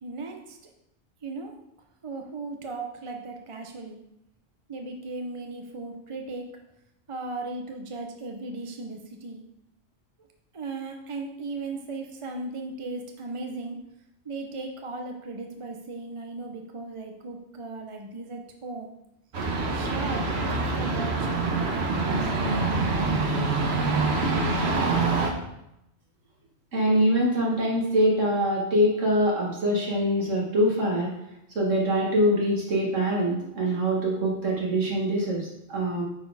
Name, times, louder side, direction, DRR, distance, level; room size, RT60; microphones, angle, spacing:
voice 1, 0.0-0.6 1.2-1.5 2.0-4.0 4.7-6.6 7.1-9.4 10.5-13.8 14.2-18.9 19.7-23.0, right 3 dB, 35° right, 3 dB, 0.6 m, -37 dB
sound 1, 19.3-25.3, right 3 dB, 60° right, 1.3 m, -25 dB
voice 2, 26.7-31.1 31.6-36.0, equal, 80° right, -3 dB, 2.0 m, -24 dB
9.2 x 4.3 x 4.7 m, 0.84 s
omnidirectional pair, 1.3 m